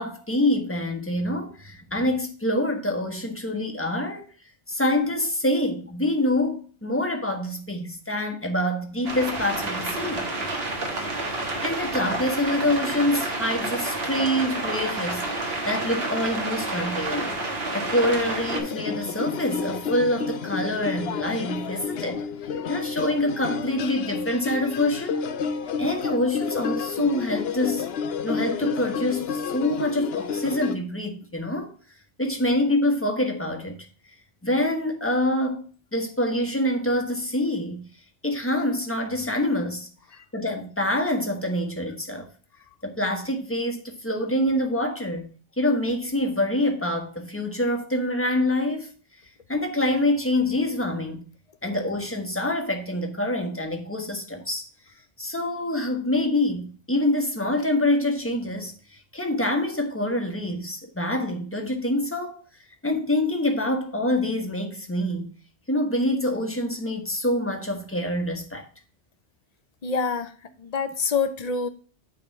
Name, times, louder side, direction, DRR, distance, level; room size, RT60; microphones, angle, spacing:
voice 1, 0.0-4.2 4.7-10.3 11.3-17.4 17.7-22.2 22.7-25.2 25.8-27.9 28.2-31.7 32.2-33.8 34.4-37.9 38.2-39.9 40.3-42.3 42.8-45.3 45.6-48.9 49.5-51.2 51.6-54.6 55.2-58.7 59.1-62.4 62.8-65.3 65.7-68.6, left 1 dB, 10° left, 1.3 m, -26 dB
sound 1, 9.0-18.6, right 2 dB, 65° right, 1.7 m, -29 dB
sound 2, 18.5-30.7, left 5 dB, 70° left, 0.8 m, -30 dB
voice 2, 69.8-70.3 70.6-71.7, left 5 dB, 40° left, 0.8 m, -26 dB
9.1 x 3.6 x 4.5 m
omnidirectional pair, 1.1 m